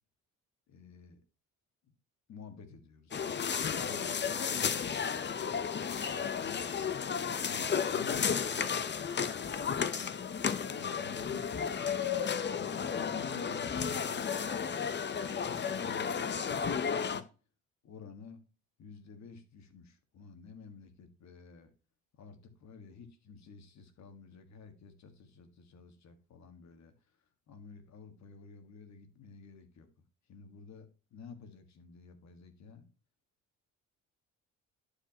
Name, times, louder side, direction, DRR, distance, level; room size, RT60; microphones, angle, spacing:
voice 1, 0.7-1.2 1.8-1.9 2.3-5.4 6.4-6.6 7.4-9.7 10.3-11.6 12.5-14.8 15.0-17.3 17.8-18.4 18.8-21.7 22.2-26.9 27.5-29.9 30.3-32.9, left 5 dB, 65° left, 1.8 m, -52 dB
sound 1, 3.1-17.2, left 7 dB, 35° left, 0.8 m, -33 dB
11.5 x 5.0 x 2.9 m
cardioid pair, 90°, 30 cm